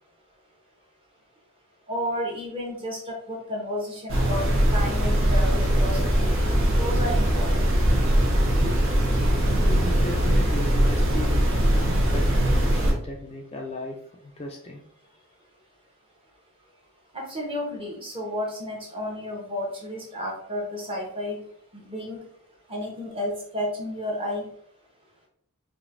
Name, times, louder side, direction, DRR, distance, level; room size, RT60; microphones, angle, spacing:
voice 1, 1.9-4.5 4.7-6.3 6.7-7.8 8.6-8.8 17.1-21.4 21.7-22.2 22.7-24.5, left 1 dB, 25° right, -1 dB, 0.9 m, -32 dB
sound 1, 4.1-12.9, equal, 60° right, 1.0 m, -21 dB
voice 2, 9.5-11.4 11.7-14.0 14.2-14.8, left 1 dB, 25° left, 1 dB, 0.4 m, -36 dB
5.0 x 2.7 x 2.5 m, 0.66 s
head